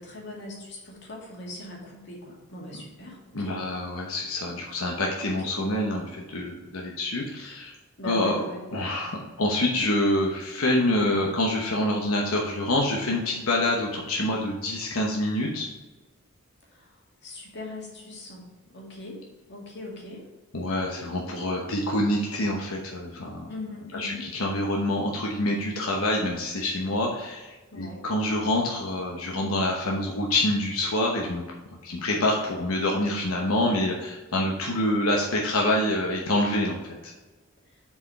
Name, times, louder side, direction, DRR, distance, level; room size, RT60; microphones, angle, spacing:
voice 1, 0.0-3.6 5.2-5.5 8.0-8.6 16.7-16.9 17.2-19.2 19.5-20.2 23.5-24.2 27.7-28.0, left 1 dB, 55° left, -2 dB, 2.2 m, -40 dB
voice 2, 3.3-7.7 8.0-8.4 8.7-15.7 20.5-23.5 23.9-31.4 31.8-36.8 37.0-37.1, left 1 dB, 90° left, -1 dB, 1.0 m, -26 dB
7.1 x 4.8 x 4.7 m, 1.2 s
head